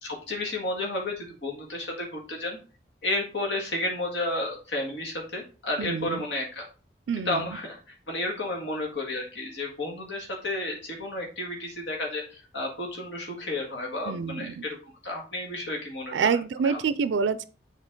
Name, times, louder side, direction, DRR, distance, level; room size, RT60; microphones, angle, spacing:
voice 1, 0.0-2.6 3.0-6.7 7.2-7.8 8.1-14.8 15.0-16.3 16.6-16.8, left 2 dB, 85° left, 1.8 m, -32 dB
voice 2, 5.8-6.2 7.1-7.4 14.0-14.6 16.1-17.5, right 6 dB, 90° right, 0.4 m, -27 dB
7.2 x 4.0 x 3.7 m
head